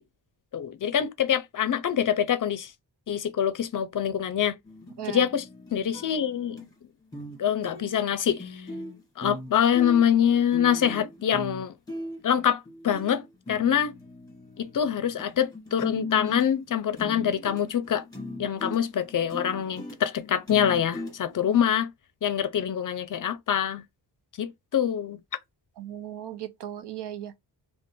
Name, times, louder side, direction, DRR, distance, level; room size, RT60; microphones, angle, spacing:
voice 1, 0.5-2.7 3.1-4.6 5.1-6.7 7.4-8.7 9.2-11.7 12.2-13.9 14.6-18.0 18.4-21.9 22.2-23.8 24.4-25.2, left 9 dB, 50° left, 0.5 m, -25 dB
sound 1, 4.6-6.7 7.1-7.4 7.6-15.2 15.5-21.6, left 1 dB, 10° left, 1.4 m, -39 dB
voice 2, 25.8-27.4, right 11 dB, 70° right, 0.6 m, -37 dB
2.5 x 2.4 x 3.7 m
wide cardioid pair, 135°, 42 cm